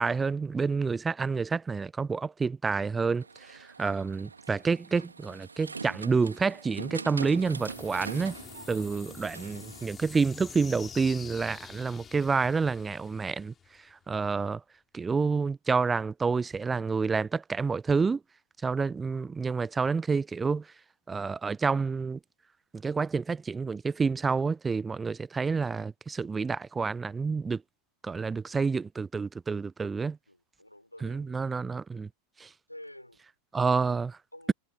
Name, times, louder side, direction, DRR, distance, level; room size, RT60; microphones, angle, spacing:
voice 1, 0.0-8.3 8.7-13.5 14.1-14.6 14.9-18.2 18.6-20.6 21.1-22.2 22.8-27.6 28.0-30.2 31.0-32.1 32.4-32.5 33.5-34.1, right 4 dB, 15° right, 0.5 m, -28 dB
sound 1, 3.2-9.9, right 4 dB, 75° right, 2.3 m, -43 dB
sound 2, 7.2-14.0, left 7 dB, 20° left, 6.3 m, -47 dB
voice 2, 30.3-31.6 32.7-33.2 33.9-34.0 34.3-34.5, left 1 dB, 85° left, 5.1 m, -49 dB
figure-of-eight pair, 90°, 0 cm